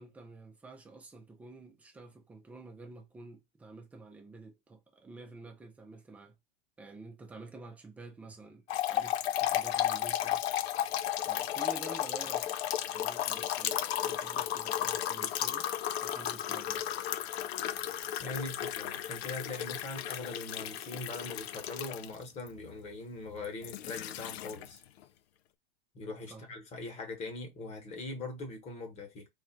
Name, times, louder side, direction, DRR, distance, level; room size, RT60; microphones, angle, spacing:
voice 1, 0.0-6.3 6.8-10.4 11.3-12.5 12.9-15.7 16.0-16.8 26.3-26.5, right 3 dB, 5° right, 0.3 m, -49 dB
sound 1, 8.7-22.5 23.4-24.8, left 12 dB, 90° left, 0.5 m, -34 dB
voice 2, 18.2-24.8 25.9-29.3, left 2 dB, 20° left, 1.0 m, -41 dB
3.1 x 2.5 x 4.4 m
supercardioid pair, 160°, 31 cm